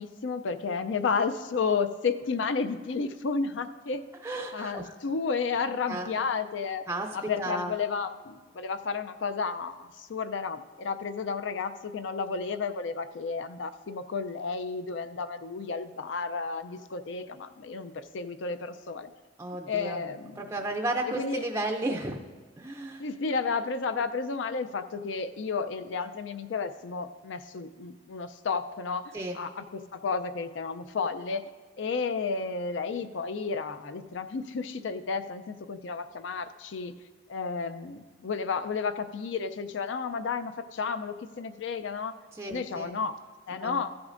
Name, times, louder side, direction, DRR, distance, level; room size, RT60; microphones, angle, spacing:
voice 1, 0.0-4.0 4.5-6.8 7.1-19.1 19.7-20.4 21.1-21.4 23.0-31.5 31.8-37.0 37.3-42.2 42.5-43.2 43.5-43.9, left 5 dB, 70° left, 11 dB, 0.5 m, -32 dB
voice 2, 4.2-4.9 5.9-6.1 6.9-7.7 19.4-20.0 20.4-22.2 22.6-23.0 29.1-29.4 42.3-42.9 43.6-43.8, right 2 dB, 15° right, 3 dB, 0.4 m, -33 dB
14.5 x 9.5 x 2.5 m, 1.4 s
head